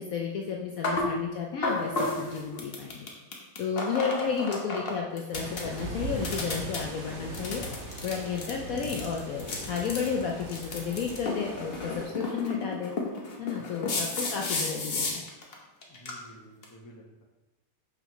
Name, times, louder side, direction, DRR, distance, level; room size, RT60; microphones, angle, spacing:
voice 1, 0.0-3.1 3.6-7.6 8.0-12.9 13.4-15.2, left 6 dB, 70° left, 0 dB, 0.8 m, -32 dB
sound 1, 0.8-1.1 1.6-4.9 5.2-5.8 6.2-6.8 7.3-15.5 15.8-16.1 16.6-16.7, left 2 dB, 45° left, 0.9 m, -32 dB
sound 2, 5.3-12.1, right 2 dB, 50° right, 1.6 m, -40 dB
voice 2, 13.6-14.0 15.9-17.2, equal, 30° left, -1 dB, 0.4 m, -52 dB
5.7 x 5.6 x 3.0 m, 1.0 s
omnidirectional pair, 2.0 m